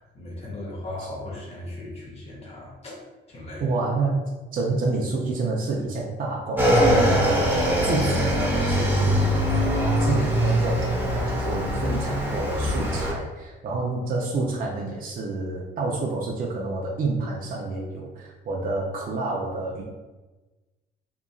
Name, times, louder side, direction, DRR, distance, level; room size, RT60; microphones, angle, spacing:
voice 1, 0.0-3.0 3.3-3.7, left 1 dB, 30° left, -4 dB, 0.8 m, -37 dB
voice 2, 3.6-4.2 4.5-19.8, right 3 dB, 45° right, -2 dB, 0.5 m, -29 dB
Motorcycle / Engine, 6.6-13.1, equal, 10° right, 0.8 m, -22 dB
2.9 x 2.4 x 2.3 m, 1.2 s
cardioid pair, 90°, 20 cm